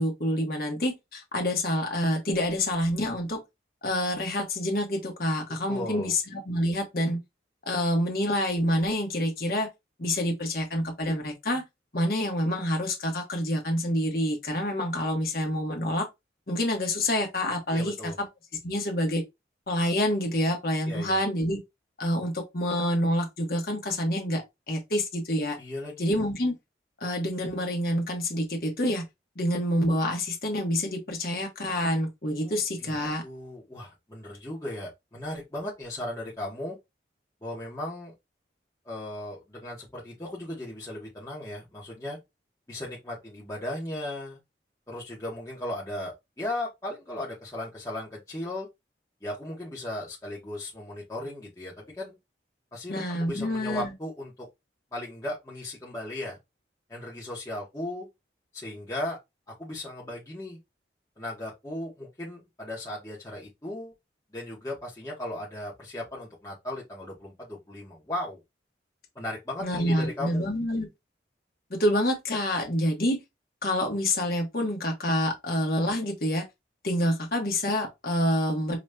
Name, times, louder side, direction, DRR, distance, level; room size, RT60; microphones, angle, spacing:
voice 1, 0.0-3.4 3.8-7.2 7.7-9.7 10.0-11.6 11.9-16.1 16.5-18.3 18.6-19.2 19.7-21.6 22.0-25.6 26.0-26.5 27.0-29.0 29.4-33.2 52.9-53.9 69.6-70.9 71.7-73.2 73.6-76.4 76.8-78.8, left 1 dB, 55° left, 1.1 m, -27 dB
voice 2, 5.7-6.1 17.7-18.2 20.9-21.2 25.6-26.1 32.4-33.0 33.2-36.8 37.4-38.1 38.8-42.2 42.7-44.4 44.9-48.7 49.2-52.2 52.7-54.5 54.9-56.4 56.9-58.1 58.5-59.2 59.6-60.6 61.2-63.9 64.3-68.4 69.1-70.4, left 1 dB, 20° left, 1.0 m, -36 dB
5.0 x 2.9 x 2.2 m
head